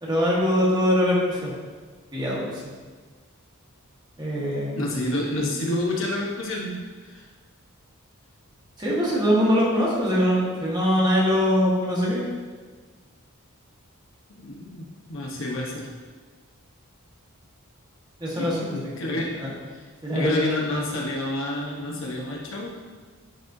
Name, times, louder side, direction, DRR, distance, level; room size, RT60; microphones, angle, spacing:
voice 1, 0.0-1.5 2.1-2.6 4.2-5.0 8.8-12.2 18.2-18.8 19.0-19.5 20.0-20.5, equal, 20° right, -6 dB, 1.5 m, -23 dB
voice 2, 4.8-7.2 14.4-15.9 18.4-19.3 19.7-19.8 20.1-22.7, left 1 dB, 60° left, -2 dB, 1.0 m, -29 dB
9.9 x 4.3 x 2.7 m, 1.4 s
head